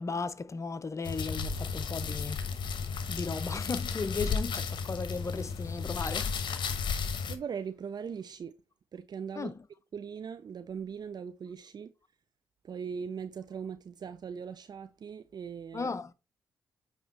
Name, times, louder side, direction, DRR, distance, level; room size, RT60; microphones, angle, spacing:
voice 1, 0.0-2.5 3.1-6.4 9.4-9.5 15.7-16.1, left 4 dB, 35° left, 0.7 m, -36 dB
sound 1, 1.0-7.4, left 5 dB, 65° left, 0.9 m, -33 dB
voice 2, 7.3-8.5 8.9-9.5 9.9-11.9 12.6-15.9, right 6 dB, 55° right, 0.5 m, -40 dB
8.5 x 3.0 x 4.3 m
hypercardioid pair, 45°, 9 cm